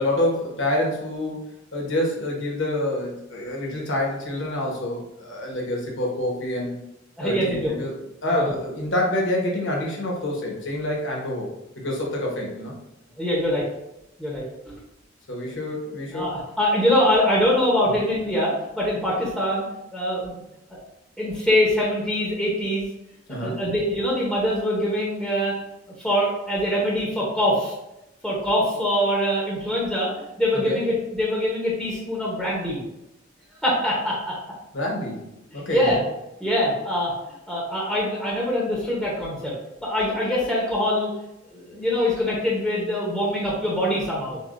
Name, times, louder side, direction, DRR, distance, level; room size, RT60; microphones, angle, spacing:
voice 1, 0.0-1.4 1.7-6.8 7.2-7.9 8.2-11.5 11.8-12.7 15.3-16.3 23.3-23.6 30.6-30.8 34.7-35.9, left 1 dB, 65° left, -2 dB, 1.2 m, -27 dB
voice 2, 7.2-7.7 8.3-8.5 13.2-13.7 14.2-14.4 16.1-19.6 19.9-20.3 20.7-20.8 21.2-22.9 23.4-25.5 26.0-27.7 28.2-30.1 30.4-32.8 33.5-34.4 35.5-36.0 36.4-37.1 37.5-39.5 39.8-41.1 41.5-44.4, left 1 dB, ahead, -5 dB, 0.9 m, -23 dB
6.7 x 2.4 x 2.6 m, 0.89 s
head